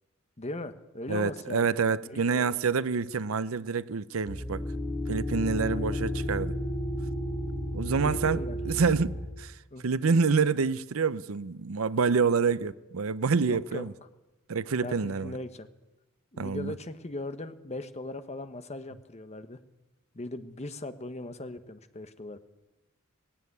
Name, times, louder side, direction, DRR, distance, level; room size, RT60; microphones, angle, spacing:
voice 1, 0.4-2.6 5.6-6.0 8.0-8.6 9.7-9.9 13.5-13.9 14.8-15.7 16.3-19.6 20.1-22.4, left 2 dB, 30° left, 1.2 m, -39 dB
voice 2, 1.1-4.7 5.1-6.6 7.7-13.9 14.5-15.3 16.4-16.7, right 5 dB, 85° right, 0.6 m, -27 dB
sound 1, 4.3-9.3, left 1 dB, 10° left, 2.5 m, -32 dB
18.5 x 16.0 x 9.6 m
head